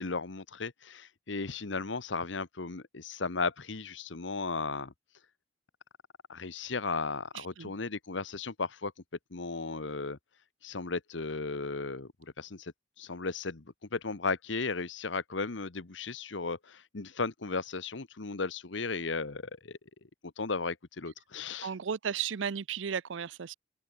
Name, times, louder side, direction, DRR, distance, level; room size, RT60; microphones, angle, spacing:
voice 1, 0.0-4.9 6.3-8.9 9.3-10.2 10.6-13.6 13.9-19.8 20.4-21.7, left 4 dB, 85° left, 1.2 m, -35 dB
voice 2, 7.3-7.7 21.6-23.5, right 7 dB, 85° right, 0.6 m, -34 dB
open air
head